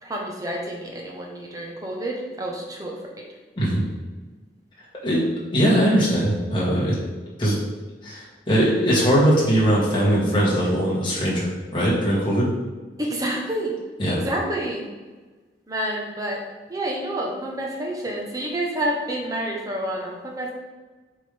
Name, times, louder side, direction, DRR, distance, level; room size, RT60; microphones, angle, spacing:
voice 1, 0.0-3.0 13.0-13.7 14.1-14.8 15.7-16.4 16.7-20.5, right 1 dB, 20° right, -1 dB, 0.9 m, -28 dB
voice 2, 5.5-7.0 7.4-7.6 8.0-12.5 14.0-14.2, equal, 25° left, -6 dB, 1.6 m, -20 dB
7.5 x 3.7 x 3.4 m, 1.3 s
head